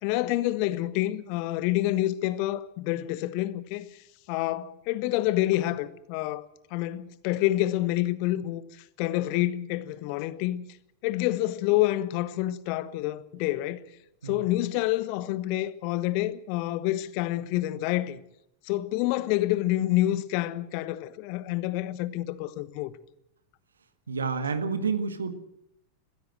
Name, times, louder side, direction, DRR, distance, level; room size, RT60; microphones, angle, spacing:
voice 1, 0.0-3.9 4.3-8.6 9.0-10.6 11.0-13.8 14.2-18.2 18.6-22.9, left 15 dB, 45° left, 1.2 m, -28 dB
voice 2, 24.1-25.3, right 5 dB, 70° right, 1.8 m, -29 dB
21.5 x 16.0 x 7.7 m
figure-of-eight pair, 90°, 0 cm